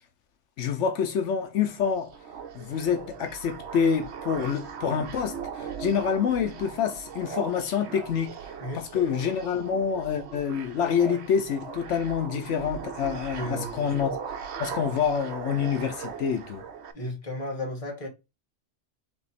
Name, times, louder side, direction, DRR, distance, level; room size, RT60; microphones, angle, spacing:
voice 1, 0.6-2.2 2.5-14.2 14.6-16.6, left 7 dB, 85° left, 1.0 m, -27 dB
sound 1, 1.6-16.9, right 6 dB, 70° right, 0.9 m, -39 dB
voice 2, 8.6-9.2 13.3-13.9 14.8-14.9 16.9-18.1, left 1 dB, 30° left, 1.3 m, -34 dB
3.5 x 2.9 x 4.0 m
omnidirectional pair, 1.2 m